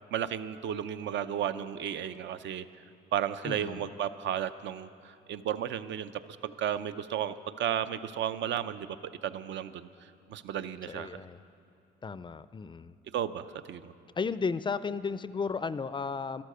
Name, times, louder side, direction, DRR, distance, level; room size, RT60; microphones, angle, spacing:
voice 1, 0.1-2.7 3.1-6.1 6.4-9.0 9.2-11.2 13.1-13.9, right 10 dB, 70° right, 12 dB, 0.6 m, -33 dB
voice 2, 3.4-3.9 10.9-11.4 12.0-12.9 14.2-16.4, left 5 dB, 25° left, 15 dB, 0.4 m, -34 dB
13.0 x 13.0 x 6.7 m, 2.6 s
cardioid pair, 90°, 20 cm